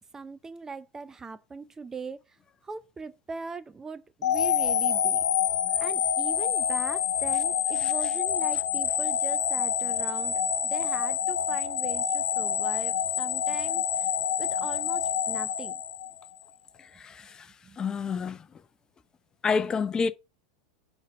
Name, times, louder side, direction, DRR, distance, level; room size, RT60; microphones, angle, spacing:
voice 1, 0.1-2.2 2.6-5.2 5.8-10.4 10.7-14.1 14.4-15.8 17.6-17.8, right 4 dB, 15° right, 0.6 m, -40 dB
sound 1, 4.2-16.4, left 9 dB, 75° left, 0.8 m, -27 dB
voice 2, 17.0-17.3 17.8-18.4 19.4-20.1, left 5 dB, 25° left, 0.7 m, -28 dB
5.7 x 4.5 x 5.9 m
hypercardioid pair, 90°, 3 cm